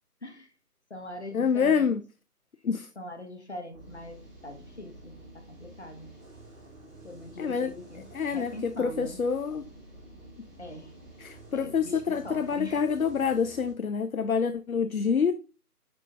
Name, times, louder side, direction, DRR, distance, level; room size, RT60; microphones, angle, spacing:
voice 1, 0.2-0.5 0.9-2.0 2.9-6.1 7.0-9.2 10.6-10.9 11.5-12.8, left 1 dB, 45° left, 1.3 m, -42 dB
voice 2, 1.3-2.0 2.6-2.9 7.4-7.7 8.1-9.6 11.2-15.3, left 6 dB, 65° left, 0.6 m, -27 dB
sound 1, 3.7-13.7, right 1 dB, ahead, 1.3 m, -50 dB
11.0 x 3.7 x 2.5 m
figure-of-eight pair, 170°, 47 cm